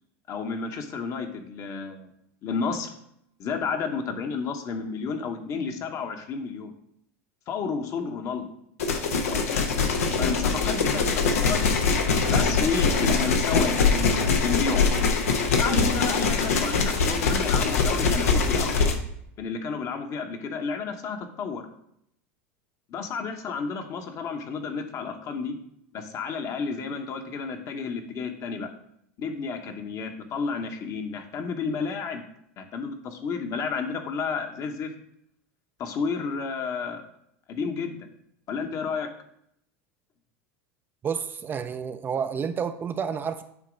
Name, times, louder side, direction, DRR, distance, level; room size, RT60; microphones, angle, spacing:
voice 1, 0.3-2.1 2.4-2.9 3.4-6.7 7.5-8.5 9.2-9.7 10.2-11.6 12.3-14.9 15.6-18.9 19.4-21.6 22.9-25.6 25.9-28.7 29.2-32.2 32.6-34.9 35.8-37.0 37.5-38.0 38.5-39.1, left 5 dB, 40° left, 5 dB, 1.0 m, -31 dB
sound 1, 8.8-18.9, left 4 dB, 90° left, 0.9 m, -23 dB
voice 2, 41.0-43.4, right 7 dB, 25° right, 9 dB, 0.4 m, -30 dB
8.2 x 2.9 x 5.1 m, 0.74 s
hypercardioid pair, 105°, 8 cm